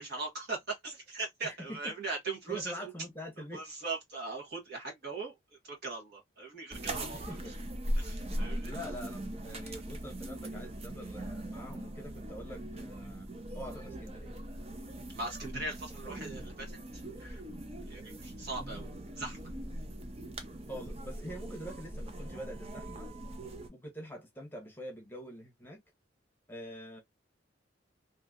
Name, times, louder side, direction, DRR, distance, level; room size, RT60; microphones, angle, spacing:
voice 1, 0.0-3.0 3.5-7.3 8.0-8.7 15.1-17.4 17.8-18.9 19.2-19.5, right 3 dB, 55° right, 1.4 m, -40 dB
voice 2, 1.4-1.9 2.5-3.6 7.1-7.5 8.3-13.3 13.5-14.3 16.0-16.4 20.7-23.1 23.7-25.8 26.5-27.0, equal, 10° left, 0.9 m, -45 dB
sound 1, 6.7-23.7, right 1 dB, 30° right, 0.6 m, -40 dB
3.1 x 2.7 x 2.3 m
head